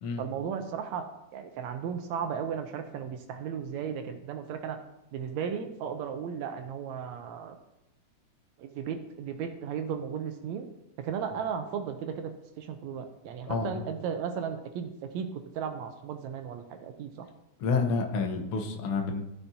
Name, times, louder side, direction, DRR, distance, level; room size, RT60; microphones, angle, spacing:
voice 1, 0.2-1.1 1.3-4.8 5.1-7.6 8.6-10.7 11.0-12.3 12.6-15.3 15.5-17.3, right 7 dB, 75° right, 7 dB, 1.8 m, -35 dB
voice 2, 17.6-19.2, left 4 dB, 65° left, 3 dB, 1.5 m, -29 dB
13.5 x 5.9 x 2.7 m, 0.86 s
omnidirectional pair, 3.5 m